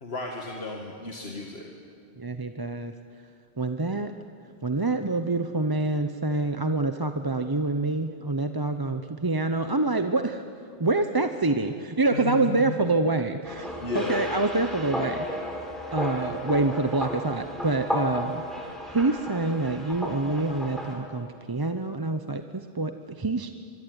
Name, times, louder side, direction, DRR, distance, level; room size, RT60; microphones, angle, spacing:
voice 1, 0.0-1.7 12.1-12.7 13.8-14.2, left 3 dB, 85° left, 1 dB, 2.4 m, -34 dB
voice 2, 2.2-2.9 3.6-4.1 4.6-10.4 10.8-15.4 15.9-18.4 18.8-23.5, right 2 dB, 25° right, 8 dB, 0.8 m, -26 dB
sound 1, 13.4-20.9, equal, ahead, 4.7 m, -33 dB
25.0 x 23.5 x 9.7 m, 2.4 s
omnidirectional pair, 1.0 m